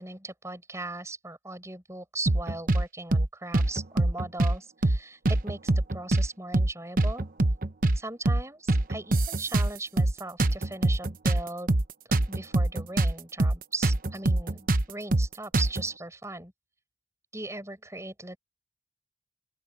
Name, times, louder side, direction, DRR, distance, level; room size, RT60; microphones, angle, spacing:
voice 1, 0.0-7.3 7.9-11.8 12.3-16.5 17.3-18.4, right 2 dB, 15° right, 7.1 m, -38 dB
sound 1, 2.3-2.8 3.1-3.3 3.5-4.6 4.8-5.0 5.3-6.3 6.5-6.7 7.0-8.0 8.3-8.4 8.7-10.1 10.4-13.1 13.4-13.6 13.8-15.9, right 2 dB, 50° right, 1.0 m, -24 dB
open air
head